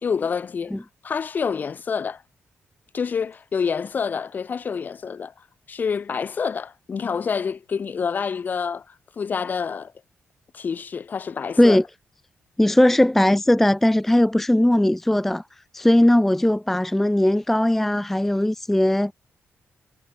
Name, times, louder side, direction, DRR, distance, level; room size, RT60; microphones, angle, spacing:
voice 1, 0.0-0.7 1.0-2.2 2.9-5.3 5.7-9.9 10.5-11.8, left 6 dB, 40° left, 2.1 m, -27 dB
voice 2, 12.6-15.4 15.7-19.1, left 1 dB, 5° left, 0.3 m, -18 dB
cardioid pair, 130°, 4 cm